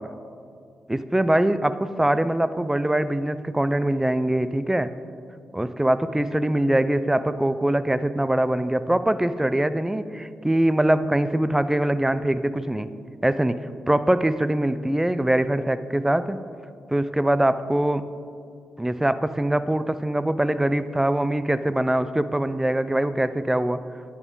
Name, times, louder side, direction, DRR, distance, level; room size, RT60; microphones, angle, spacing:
voice 1, 0.9-4.9 5.5-12.9 13.2-16.4 16.9-18.0 18.8-23.8, right 1 dB, 10° right, 13 dB, 0.4 m, -23 dB
9.7 x 7.2 x 3.9 m, 2.3 s
supercardioid pair, 50°, 4 cm